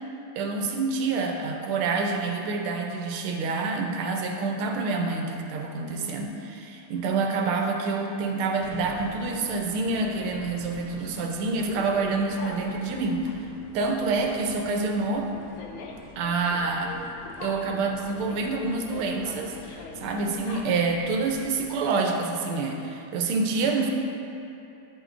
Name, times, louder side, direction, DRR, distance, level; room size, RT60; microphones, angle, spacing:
voice 1, 0.4-13.3 13.7-15.3 16.2-17.0 17.4-23.9, right 3 dB, 85° right, 2 dB, 1.6 m, -27 dB
sound 1, 8.6-21.7, left 3 dB, 80° left, 1.5 m, -43 dB
9.7 x 8.0 x 2.6 m, 2.8 s
omnidirectional pair, 2.3 m